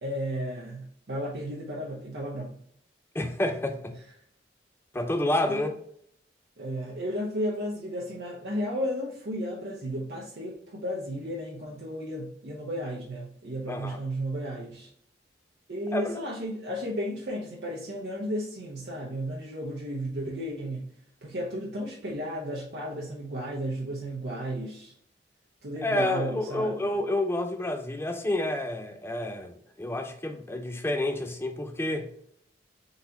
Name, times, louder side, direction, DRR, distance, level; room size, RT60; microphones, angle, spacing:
voice 1, 0.0-2.6 5.5-5.6 6.6-14.9 15.7-20.9 21.2-24.9 25.6-26.9, equal, 65° right, 0.8 m, -33 dB
voice 2, 3.1-4.0 4.9-5.8 13.7-14.0 15.9-16.2 25.8-32.1, left 1 dB, 15° left, 0.4 m, -29 dB
4.0 x 3.9 x 2.8 m
head